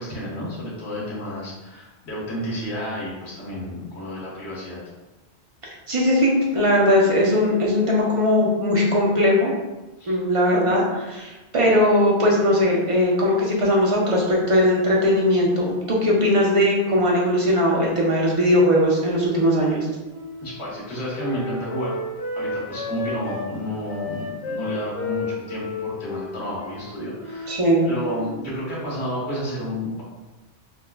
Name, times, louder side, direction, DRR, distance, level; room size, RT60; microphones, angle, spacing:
voice 1, 0.0-4.8 10.0-10.2 20.4-22.0 22.3-27.6 27.8-30.0, equal, 70° left, -6 dB, 1.5 m, -31 dB
voice 2, 5.9-9.5 10.1-19.9 27.5-27.9, left 1 dB, 35° right, -3 dB, 0.7 m, -19 dB
Wind instrument woodwind instrument, 19.5-23.5 23.9-28.3, left 2 dB, 35° left, 1.5 m, -33 dB
5.7 x 2.3 x 2.2 m, 1.1 s
omnidirectional pair, 1.1 m